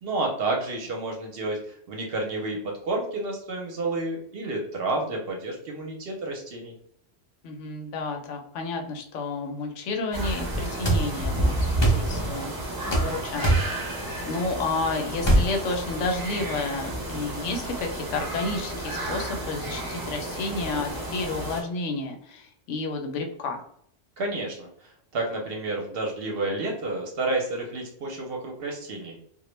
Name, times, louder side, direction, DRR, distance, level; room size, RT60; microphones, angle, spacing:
voice 1, 0.0-6.7 24.2-29.2, right 2 dB, 60° right, 0 dB, 0.7 m, -30 dB
voice 2, 7.4-12.5 13.0-13.5 14.3-23.6, left 3 dB, 75° left, 3 dB, 0.9 m, -31 dB
sound 1, 10.1-21.6, right 1 dB, 30° right, 0.4 m, -31 dB
sound 2, 10.8-11.0 11.8-12.0 12.9-13.1 13.4-13.7 15.2-15.5, right 1 dB, 45° left, 0.3 m, -20 dB
2.2 x 2.1 x 3.0 m, 0.64 s
omnidirectional pair, 1.3 m